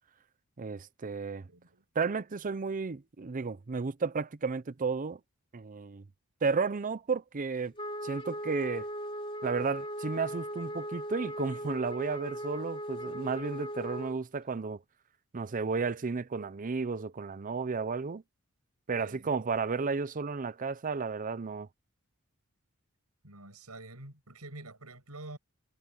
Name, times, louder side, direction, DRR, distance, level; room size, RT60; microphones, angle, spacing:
voice 1, 0.6-1.5 2.0-5.2 5.5-6.0 6.4-7.7 8.0-8.9 9.4-14.8 15.3-18.2 18.9-21.7, right 4 dB, 35° right, 0.6 m, -33 dB
voice 2, 1.5-1.8 19.0-19.3 23.2-25.4, right 2 dB, 90° right, 6.8 m, -47 dB
Wind instrument woodwind instrument, 7.8-14.2, equal, 25° left, 3.3 m, -38 dB
head